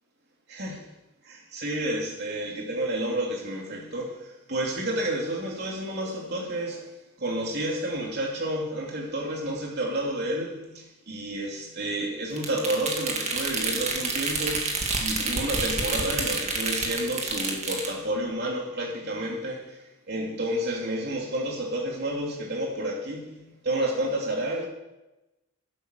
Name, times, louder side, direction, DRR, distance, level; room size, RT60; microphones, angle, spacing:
voice 1, 0.5-0.9 1.2-6.9 7.2-19.8 20.1-24.7, right 1 dB, 50° right, -1 dB, 3.4 m, -30 dB
sound 1, 12.4-17.9, right 3 dB, 35° right, 2.0 m, -29 dB
11.5 x 11.0 x 6.7 m, 1.0 s
head